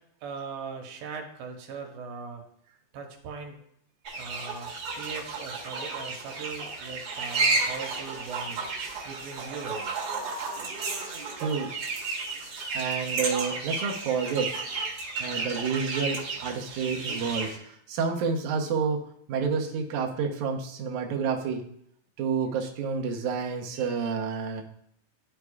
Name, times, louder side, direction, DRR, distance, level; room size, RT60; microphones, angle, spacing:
voice 1, 0.2-2.4 2.9-3.6 4.2-8.7 9.1-10.0, right 5 dB, 85° right, 2 dB, 2.7 m, -40 dB
sound 1, 4.1-17.6, right 3 dB, 50° right, 2.0 m, -32 dB
voice 2, 11.4-11.7 12.7-14.6 15.2-21.7 22.2-24.6, right 5 dB, 70° right, 1 dB, 2.0 m, -29 dB
13.0 x 4.7 x 2.4 m, 0.71 s
omnidirectional pair, 4.1 m